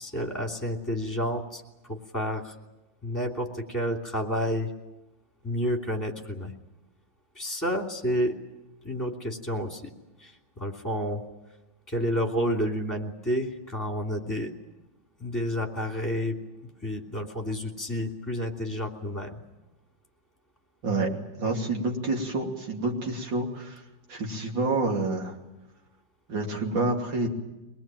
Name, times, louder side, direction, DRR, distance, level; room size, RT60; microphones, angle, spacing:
voice 1, 0.0-2.5 3.0-4.7 5.4-6.5 7.3-8.4 8.8-9.9 10.2-11.2 11.9-14.5 15.2-16.4 16.6-19.4, equal, 10° left, 1 dB, 2.7 m, -30 dB
voice 2, 21.4-23.8 24.1-25.3 26.3-27.3, right 2 dB, 75° right, 1 dB, 3.5 m, -28 dB
24.0 x 20.0 x 9.0 m, 1.0 s
omnidirectional pair, 2.0 m